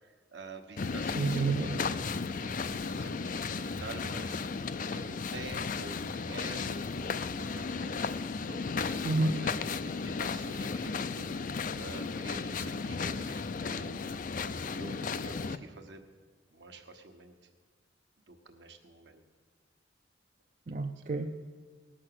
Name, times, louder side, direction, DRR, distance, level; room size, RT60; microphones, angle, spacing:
voice 1, 0.0-2.0 2.4-4.4 4.9-14.1 14.7-16.0 16.5-17.3 18.3-19.2, right 3 dB, 70° right, 4 dB, 1.3 m, -48 dB
sound 1, 0.8-15.6, left 4 dB, 45° left, 0.4 m, -35 dB
voice 2, 1.1-1.8 9.0-9.3 20.7-21.4, right 3 dB, 40° right, 3 dB, 0.5 m, -30 dB
19.0 x 6.3 x 7.8 m, 1.5 s
head